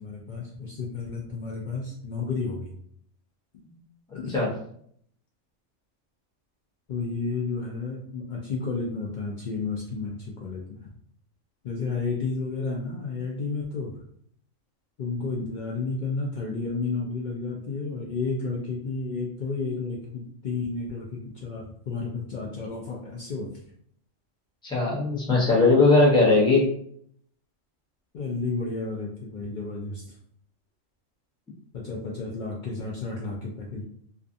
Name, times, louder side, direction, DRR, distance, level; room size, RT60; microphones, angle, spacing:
voice 1, 0.0-2.7 4.1-4.4 6.9-10.9 11.6-13.9 15.0-23.5 28.1-30.1 31.7-33.8, left 4 dB, 90° left, -3 dB, 0.4 m, -32 dB
voice 2, 24.6-26.7, left 3 dB, 5° left, -5 dB, 0.4 m, -19 dB
2.5 x 2.3 x 2.5 m, 0.65 s
omnidirectional pair, 1.4 m